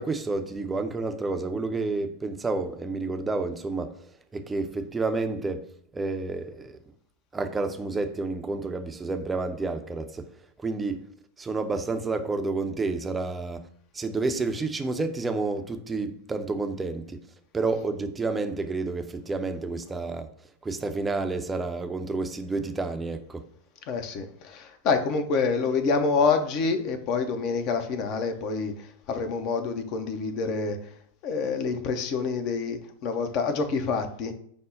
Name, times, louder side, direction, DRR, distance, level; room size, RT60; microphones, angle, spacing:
voice 1, 0.0-3.9 4.3-5.6 5.9-6.7 7.3-10.3 10.6-11.0 11.4-13.6 13.9-17.2 17.5-20.3 20.6-23.4, right 3 dB, 15° right, 0.5 m, -30 dB
voice 2, 23.9-30.8 31.2-34.3, left 4 dB, 45° left, 0.5 m, -27 dB
5.2 x 2.0 x 3.7 m
figure-of-eight pair, 90°, 0 cm